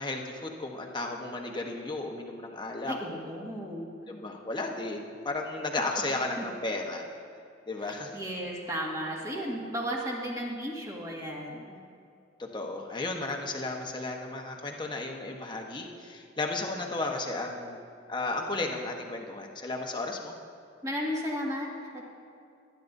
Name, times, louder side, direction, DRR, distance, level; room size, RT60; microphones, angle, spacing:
voice 1, 0.0-3.0 4.1-7.0 7.7-8.1 12.4-17.8 18.1-20.3, left 2 dB, 25° left, 1 dB, 1.1 m, -34 dB
voice 2, 2.9-3.9 5.9-6.1 6.4-6.5 7.8-11.8 20.8-22.1, equal, 15° right, -3 dB, 1.9 m, -34 dB
21.5 x 10.5 x 2.7 m, 2.4 s
head